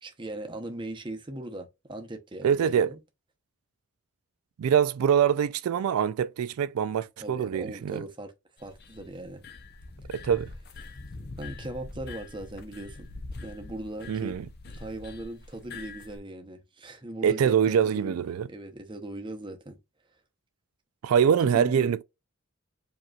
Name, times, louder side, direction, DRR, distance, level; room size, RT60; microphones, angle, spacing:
voice 1, 0.0-3.0 7.2-8.3 8.6-9.4 11.4-13.1 13.4-14.4 14.7-19.8 21.4-21.9, right 1 dB, 20° right, 0.8 m, -39 dB
voice 2, 2.4-2.9 4.6-8.0 10.1-10.5 14.1-14.4 17.2-18.5 21.0-22.0, right 8 dB, 90° right, 0.3 m, -24 dB
sound 1, 8.6-16.2, left 3 dB, 50° left, 0.6 m, -44 dB
4.9 x 2.9 x 2.3 m
head